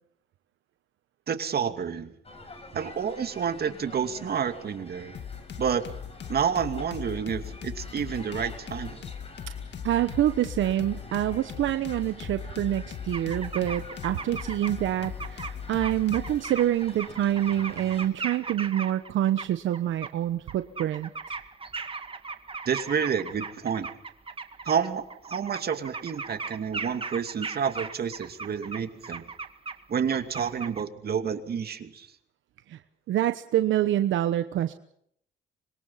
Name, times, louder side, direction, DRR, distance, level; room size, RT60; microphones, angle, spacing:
voice 1, 1.3-2.1 2.7-5.1 5.6-5.9 6.3-9.1 22.7-23.9 24.6-29.2 29.9-32.1, right 7 dB, 50° right, 7 dB, 2.6 m, -29 dB
sound 1, 2.2-18.1, left 2 dB, 30° left, 7.2 m, -48 dB
sound 2, 5.1-16.4, left 8 dB, 60° left, 2.0 m, -39 dB
voice 2, 9.8-21.1 32.7-32.8 33.1-34.7, right 12 dB, 75° right, 9 dB, 1.1 m, -26 dB
sound 3, 13.1-14.7 15.0-19.1 19.4-20.1 20.5-29.8 30.1-30.8, right 4 dB, 25° right, 2.0 m, -37 dB
25.5 x 22.5 x 5.8 m, 0.69 s
cardioid pair, 90°, 20 cm